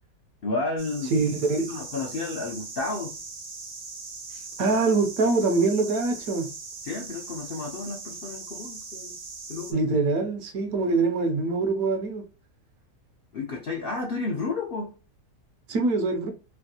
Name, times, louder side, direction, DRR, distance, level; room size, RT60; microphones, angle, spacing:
voice 1, 0.4-1.1 1.7-3.2 6.8-9.2 9.5-9.8 13.3-14.9, left 3 dB, 75° left, 0.5 m, -31 dB
sound 1, 0.8-9.7, right 4 dB, 45° right, 0.6 m, -40 dB
voice 2, 1.1-1.7 4.6-6.5 9.7-12.2 15.7-16.3, right 3 dB, 70° right, 1.0 m, -24 dB
3.4 x 2.3 x 2.7 m
omnidirectional pair, 1.7 m